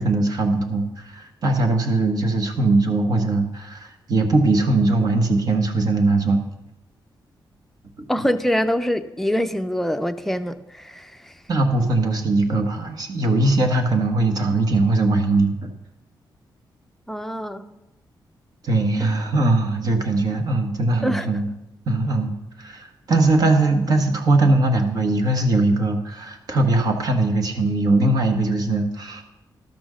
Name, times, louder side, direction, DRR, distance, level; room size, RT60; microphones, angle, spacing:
voice 1, 0.0-6.4 8.0-8.1 11.5-15.7 18.6-21.5 21.9-22.3 22.6-29.2, right 2 dB, 50° right, 5 dB, 1.3 m, -20 dB
voice 2, 8.1-11.1 17.1-17.7 21.0-21.3, equal, 5° left, 8 dB, 0.5 m, -24 dB
12.0 x 6.1 x 6.2 m, 0.94 s
wide cardioid pair, 130°, 8 cm